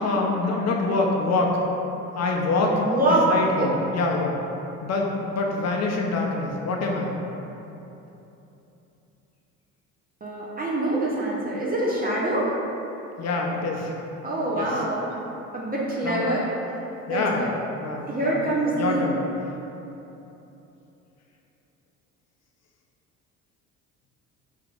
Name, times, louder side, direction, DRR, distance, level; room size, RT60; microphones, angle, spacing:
voice 1, 0.0-1.6 2.1-2.8 3.3-4.3 4.8-7.1 13.2-13.9 14.6-14.8 16.0-16.2 17.1-18.4 18.7-19.2, left 3 dB, 45° left, 0 dB, 0.7 m, -25 dB
voice 2, 2.8-3.7 10.2-12.5 14.2-15.2 15.5-16.4 17.1-17.5 18.1-19.1, right 1 dB, 25° right, -6 dB, 0.7 m, -25 dB
4.6 x 3.5 x 2.4 m, 3.0 s
hypercardioid pair, 60°, 36 cm